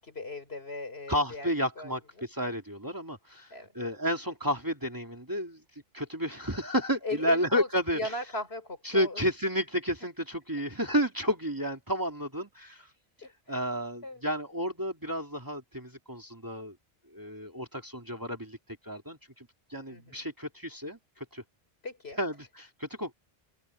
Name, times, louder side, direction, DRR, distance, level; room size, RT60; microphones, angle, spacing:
voice 1, 0.0-1.5 1.8-1.9 3.5-3.7 7.0-9.2 13.2-13.6 14.0-14.2 19.9-20.3 21.8-22.2, left 2 dB, 75° left, 4.3 m, -37 dB
voice 2, 1.1-5.6 5.9-8.1 8.8-12.9 13.5-16.8 17.1-18.6 18.8-21.4 22.2-23.1, equal, 20° right, 2.3 m, -31 dB
open air
omnidirectional pair, 1.1 m